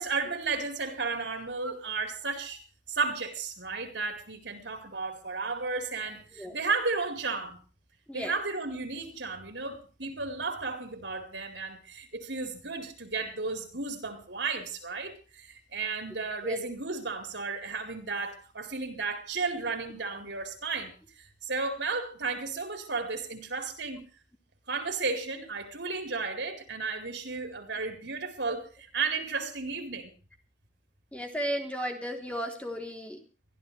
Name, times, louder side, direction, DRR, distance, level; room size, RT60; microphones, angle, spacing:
voice 1, 0.0-2.6 2.9-7.6 8.1-24.0 24.7-30.1, right 4 dB, 70° right, 4.6 m, -33 dB
voice 2, 31.1-33.2, equal, 5° left, 3.7 m, -35 dB
24.0 x 15.5 x 3.4 m
head